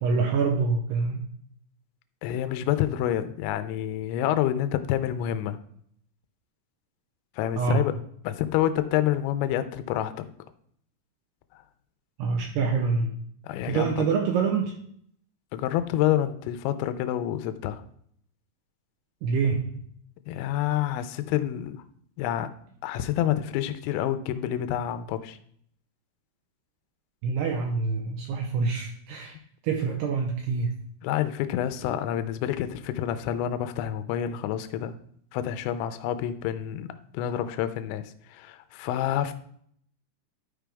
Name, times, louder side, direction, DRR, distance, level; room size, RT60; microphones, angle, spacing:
voice 1, 0.0-1.3 7.6-7.8 12.2-13.1 13.7-14.7 19.2-19.6 27.2-29.4 29.6-30.7, right 5 dB, 80° right, 2 dB, 2.5 m, -26 dB
voice 2, 2.2-5.6 7.4-7.9 8.2-10.3 13.4-14.0 15.5-17.8 20.3-21.8 22.2-22.5 22.8-25.4 31.0-35.0 35.3-36.9 37.1-39.4, left 11 dB, 80° left, 11 dB, 2.8 m, -28 dB
12.5 x 5.0 x 3.5 m, 0.64 s
omnidirectional pair, 5.5 m